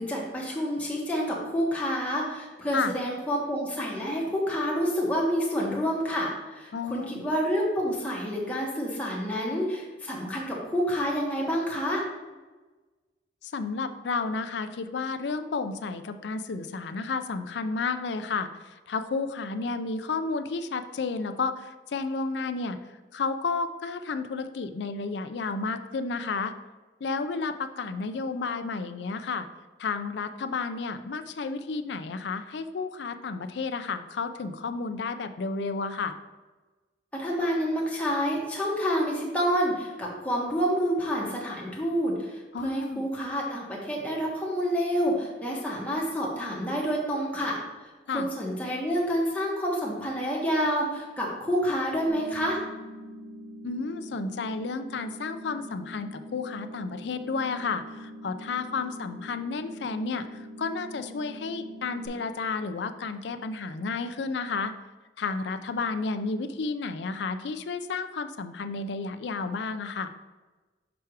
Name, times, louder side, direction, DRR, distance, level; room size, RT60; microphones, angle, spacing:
voice 1, 0.0-12.0 37.1-52.6, equal, 10° left, -4 dB, 1.3 m, -28 dB
voice 2, 6.7-7.2 13.4-22.8 23.1-26.5 27.0-29.5 29.8-36.2 42.5-43.0 48.1-48.3 53.6-64.7 65.2-70.1, left 4 dB, 70° left, 10 dB, 0.4 m, -32 dB
sound 1, 52.1-62.1, equal, 90° right, 1.9 m, -43 dB
6.1 x 4.6 x 4.7 m, 1.2 s
head